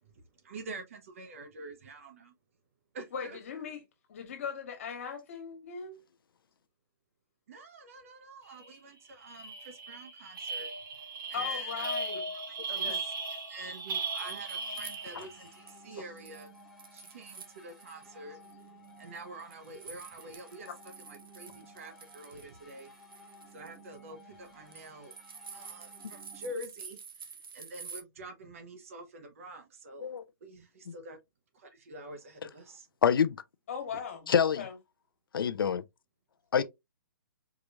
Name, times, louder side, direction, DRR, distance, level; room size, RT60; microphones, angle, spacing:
voice 1, 0.0-2.3 2.9-3.4 7.5-10.7 11.3-11.9 12.3-16.5 16.9-18.4 19.0-20.7 21.0-22.9 23.5-25.1 25.5-31.2 31.5-32.9 36.6-36.7, right 2 dB, 40° right, 1.0 m, -47 dB
voice 2, 3.1-3.8 4.1-6.0 11.3-12.2 12.7-13.0 33.7-34.3 34.6-34.7, left 6 dB, 40° left, 1.7 m, -39 dB
sound 1, 8.6-8.7 9.0-15.5, right 3 dB, 70° right, 1.7 m, -37 dB
sound 2, 13.8-15.8 16.2-18.1 18.4-28.0, right 5 dB, 90° right, 1.0 m, -49 dB
sound 3, 14.5-26.5, equal, ahead, 0.4 m, -56 dB
voice 3, 33.0-33.4 34.3-34.6 35.3-35.8 36.5-36.6, left 7 dB, 85° left, 0.6 m, -26 dB
4.9 x 3.0 x 2.5 m
hypercardioid pair, 180°, 11 cm